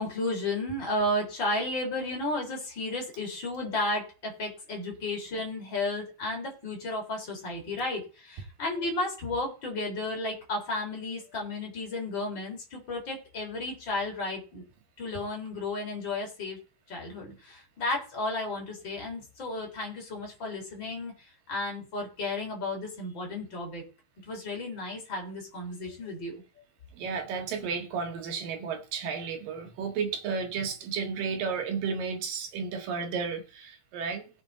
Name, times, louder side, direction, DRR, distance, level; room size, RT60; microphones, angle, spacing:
voice 1, 0.0-14.6 15.0-16.6 16.9-21.1 21.5-23.8 24.3-26.3, left 2 dB, 30° left, 4.3 m, -33 dB
voice 2, 26.9-34.3, right 5 dB, 65° right, 3.3 m, -33 dB
18.0 x 7.8 x 3.9 m
omnidirectional pair, 4.5 m